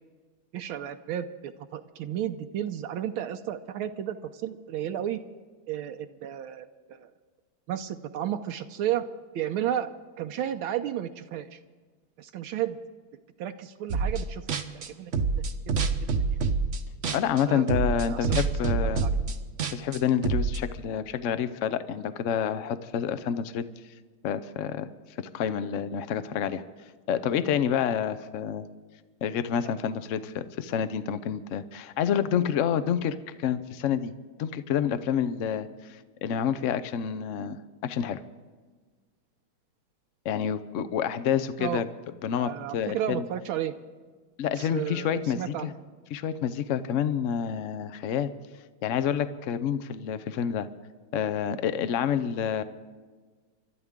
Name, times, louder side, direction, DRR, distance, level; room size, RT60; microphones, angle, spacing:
voice 1, 0.5-5.2 5.7-7.1 7.7-9.1 9.3-9.9 10.2-11.6 12.2-12.8 13.4-14.5 14.7-15.3 15.7-16.1 17.5-17.7 18.1-18.3 19.0-19.1 41.6-41.8 42.4-43.8 44.6-45.7, right 11 dB, 80° right, 7 dB, 1.5 m, -33 dB
sound 1, 13.9-14.2 14.5-17.4 17.7-20.6, right 4 dB, 50° right, 0.9 m, -26 dB
voice 2, 17.1-19.0 19.7-23.7 24.2-24.9 25.2-26.6 27.1-28.7 29.2-34.1 34.4-38.2 40.2-41.9 42.2-43.2 44.4-45.7 46.1-48.3 48.8-50.7 51.1-52.6, left 8 dB, 85° left, 12 dB, 0.6 m, -28 dB
30.0 x 13.0 x 3.7 m, 1.5 s
omnidirectional pair, 2.3 m